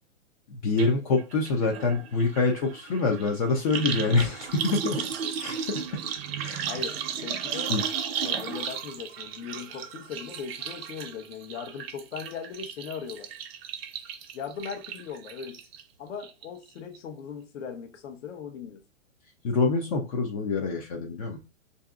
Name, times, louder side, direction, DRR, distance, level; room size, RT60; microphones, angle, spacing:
voice 1, 0.5-5.0 5.4-6.0 6.4-6.7 7.7-7.8 19.4-21.4, left 3 dB, 30° left, 0.4 m, -26 dB
sound 1, 0.8-0.9 1.2-15.8 16.2-16.7 16.9-17.0, right 7 dB, 50° right, 0.7 m, -35 dB
voice 2, 6.7-7.7 8.2-13.3 14.3-15.6 16.0-18.8, left 7 dB, 65° left, 0.9 m, -39 dB
4.9 x 2.7 x 2.3 m
hypercardioid pair, 135°, 39 cm